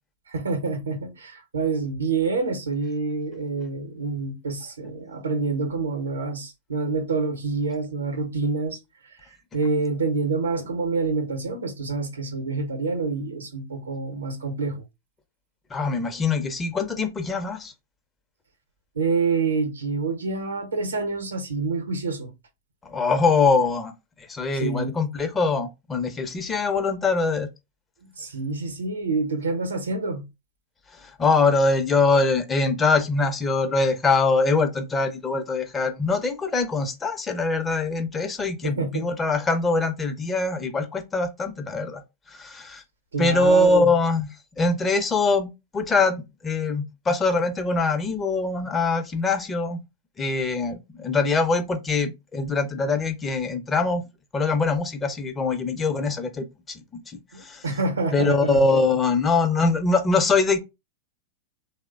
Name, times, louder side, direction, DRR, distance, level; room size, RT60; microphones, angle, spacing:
voice 1, 0.3-14.8 18.9-22.3 24.5-25.0 28.0-30.2 38.6-39.1 43.1-43.9 57.3-58.6, right 4 dB, 90° right, 0.7 m, -27 dB
voice 2, 15.7-17.7 22.8-23.9 24.2-27.5 31.0-42.0 42.3-42.8 43.2-44.3 44.6-49.8 50.2-54.0 54.3-57.6 58.1-60.6, left 3 dB, 20° left, 0.5 m, -23 dB
3.1 x 2.0 x 2.4 m
hypercardioid pair, 100°, 0 cm